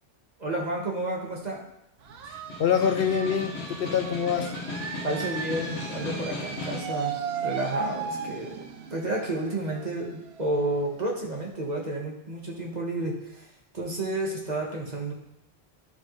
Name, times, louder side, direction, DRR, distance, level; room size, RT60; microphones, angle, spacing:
voice 1, 0.4-1.6 5.0-7.1 7.4-8.6 8.9-13.5 13.7-15.1, right 2 dB, 40° right, -2 dB, 1.5 m, -31 dB
sound 1, 2.0-11.5, right 5 dB, 75° right, 0.9 m, -36 dB
voice 2, 2.3-4.5, left 7 dB, 65° left, 8 dB, 0.7 m, -26 dB
Snare drum, 2.4-7.0, left 3 dB, 85° left, 1.3 m, -37 dB
12.0 x 4.2 x 3.1 m, 0.81 s
omnidirectional pair, 1.1 m